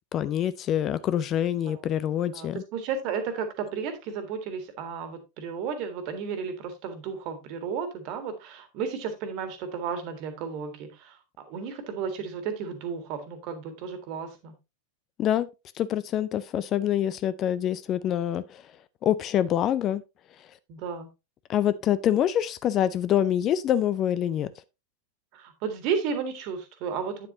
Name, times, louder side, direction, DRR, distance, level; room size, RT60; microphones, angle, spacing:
voice 1, 0.1-2.6 15.2-15.5 15.8-18.6 19.0-20.0 21.5-24.5, left 10 dB, 30° left, 0.4 m, -25 dB
voice 2, 2.3-14.6 20.7-21.1 25.3-27.3, right 6 dB, 40° right, 1.8 m, -33 dB
9.3 x 7.4 x 2.7 m
figure-of-eight pair, 90°, 0 cm